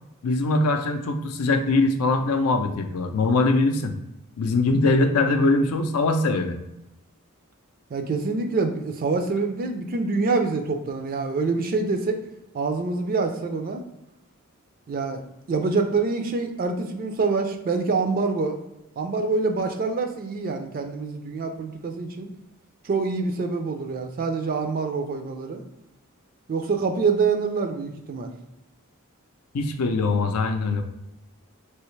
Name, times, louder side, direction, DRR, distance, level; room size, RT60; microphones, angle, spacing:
voice 1, 0.2-3.9 4.4-6.6 29.5-30.8, left 3 dB, 75° left, 6 dB, 0.5 m, -22 dB
voice 2, 7.9-12.2 12.5-13.8 14.9-15.2 15.5-18.6 19.0-22.3 22.8-25.6 26.5-28.3, right 4 dB, 40° right, 5 dB, 0.4 m, -26 dB
3.4 x 2.8 x 3.1 m, 0.92 s
head